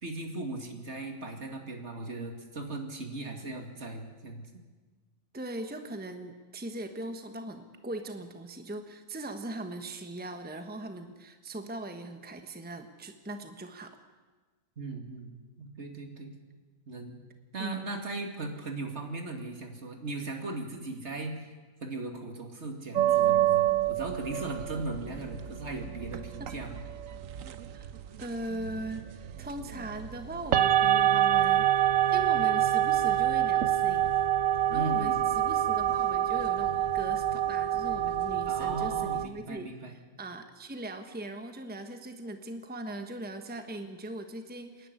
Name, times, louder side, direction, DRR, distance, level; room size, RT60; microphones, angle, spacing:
voice 1, 0.0-4.5 14.8-16.3 16.9-17.2 17.5-21.5 21.8-26.8 34.7-35.2 38.4-39.9, right 2 dB, 60° right, 4 dB, 2.6 m, -38 dB
voice 2, 5.3-14.0 17.6-18.0 26.4-26.5 27.7-27.9 28.2-34.1 34.7-44.9, right 1 dB, 10° right, 7 dB, 1.1 m, -40 dB
sound 1, 23.0-39.3, right 11 dB, 85° right, 1.3 m, -27 dB
27.0 x 11.0 x 9.6 m, 1.3 s
omnidirectional pair, 1.4 m